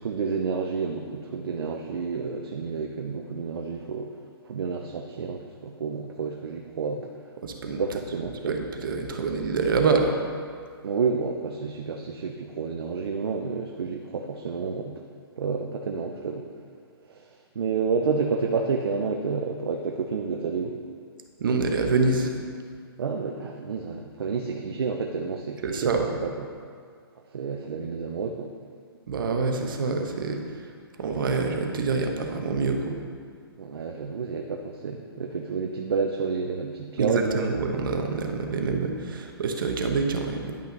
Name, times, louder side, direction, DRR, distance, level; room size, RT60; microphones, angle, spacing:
voice 1, 0.0-7.3 7.8-8.6 10.8-15.0 15.4-16.4 17.1-20.8 23.0-26.5 27.3-28.5 33.6-37.7, right 5 dB, 75° right, 3 dB, 0.7 m, -30 dB
voice 2, 7.4-7.8 8.5-10.2 21.4-22.3 25.6-26.1 29.1-30.7 31.0-33.0 37.0-40.5, right 4 dB, 55° right, 3 dB, 1.0 m, -26 dB
10.5 x 5.6 x 4.0 m, 2.1 s
hypercardioid pair, 160°, 13 cm